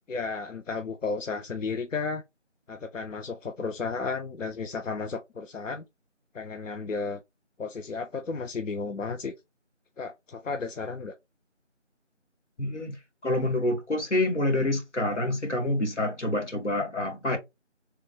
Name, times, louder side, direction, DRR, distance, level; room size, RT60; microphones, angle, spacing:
voice 1, 0.1-2.2 2.7-5.8 6.3-7.2 7.6-9.3 10.0-11.1, left 4 dB, 90° left, 0.6 m, -33 dB
voice 2, 12.6-17.4, left 1 dB, 70° left, 1.3 m, -27 dB
3.3 x 2.4 x 3.4 m
figure-of-eight pair, 175°, 37 cm